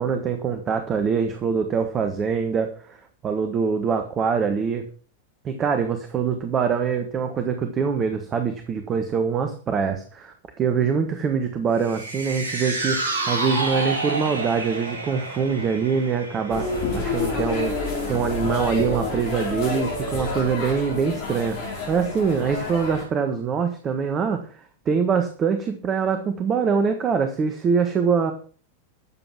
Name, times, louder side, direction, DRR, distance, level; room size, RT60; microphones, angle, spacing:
voice 1, 0.0-3.0 3.2-4.8 5.4-24.5 24.8-28.3, right 6 dB, 25° right, 7 dB, 1.5 m, -24 dB
sound 1, 11.8-18.2 18.6-18.7, right 2 dB, 65° right, 3.7 m, -30 dB
sound 2, 16.5-23.0, left 3 dB, 40° left, 5.3 m, -28 dB
13.0 x 7.8 x 6.1 m, 0.42 s
figure-of-eight pair, 90°, 0 cm